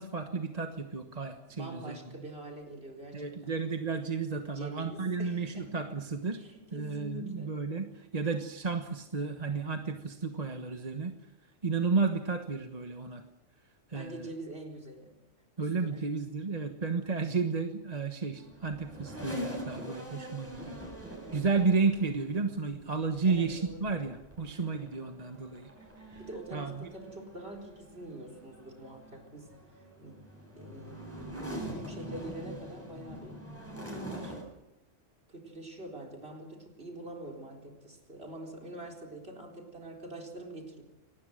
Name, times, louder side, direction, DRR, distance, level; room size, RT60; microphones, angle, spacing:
voice 1, 0.0-2.2 3.1-6.4 6.7-11.1 11.6-13.2 13.9-14.3 15.6-20.8 21.3-25.7 26.1-26.2 26.5-26.9, right 4 dB, 35° right, 5 dB, 1.3 m, -32 dB
voice 2, 1.5-3.5 4.5-5.8 6.4-7.6 13.9-15.2 15.6-16.1 21.2-21.5 23.2-24.0 26.1-30.3 30.6-31.0 31.3-33.5 33.9-34.4 35.3-40.8, right 1 dB, 50° right, 5 dB, 4.5 m, -45 dB
sound 1, 18.3-34.4, equal, 10° right, 7.6 m, -44 dB
25.5 x 19.5 x 6.6 m, 0.98 s
omnidirectional pair, 1.3 m